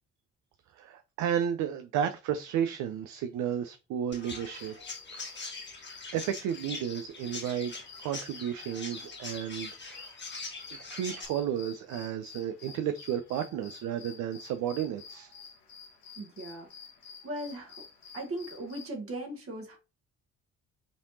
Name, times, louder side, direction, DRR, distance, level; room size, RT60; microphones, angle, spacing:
voice 1, 0.7-4.8 5.1-5.4 6.1-10.1 10.9-15.3, right 9 dB, 55° right, 0.5 m, -33 dB
Chirp tweet, 4.1-11.3, left 3 dB, 30° left, 1.6 m, -43 dB
sound 1, 4.4-18.9, left 6 dB, 65° left, 1.4 m, -50 dB
voice 2, 16.2-16.7 17.2-17.8 18.1-19.8, right 1 dB, 40° right, 1.3 m, -38 dB
5.1 x 3.3 x 2.7 m
hypercardioid pair, 50°, 36 cm